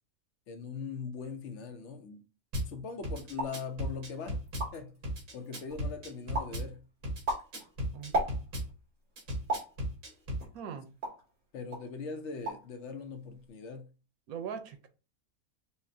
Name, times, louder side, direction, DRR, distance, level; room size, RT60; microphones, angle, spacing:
voice 1, 0.5-2.3 2.7-4.4 4.7-5.0 5.3-6.8 11.5-13.9, left 5 dB, 60° left, 0.8 m, -41 dB
Drum kit / Bass drum, 2.5-2.7 3.0-4.7 5.0-6.7 7.0-8.7 9.2-10.4, equal, 70° right, 1.7 m, -35 dB
sound 1, 3.3-3.6 4.2-4.3 4.4-5.0 5.4-5.9 6.3-6.6 7.0-8.7 9.5-9.8 10.4-11.3 11.7-11.9 12.2-12.7 13.0-13.5, right 1 dB, 50° right, 2.2 m, -35 dB
voice 2, 10.5-10.9 14.3-14.9, right 7 dB, 90° right, 1.2 m, -40 dB
5.5 x 2.1 x 2.6 m
omnidirectional pair, 1.5 m